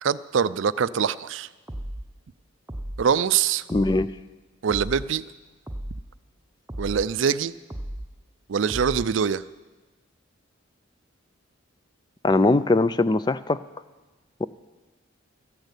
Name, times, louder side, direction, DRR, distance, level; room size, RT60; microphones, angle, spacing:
voice 1, 0.0-1.5 3.0-3.6 4.6-5.2 6.8-7.6 8.5-9.4, right 7 dB, 65° right, 17 dB, 0.4 m, -24 dB
sound 1, 1.7-2.1 2.7-3.1 3.7-4.1 4.7-5.1 5.7-6.1 6.7-7.1 7.7-8.1 8.7-9.1, right 1 dB, 10° right, 0.9 m, -34 dB
voice 2, 3.7-4.1 12.2-13.6, left 2 dB, 20° left, 14 dB, 0.4 m, -21 dB
14.5 x 10.5 x 8.2 m, 1.2 s
head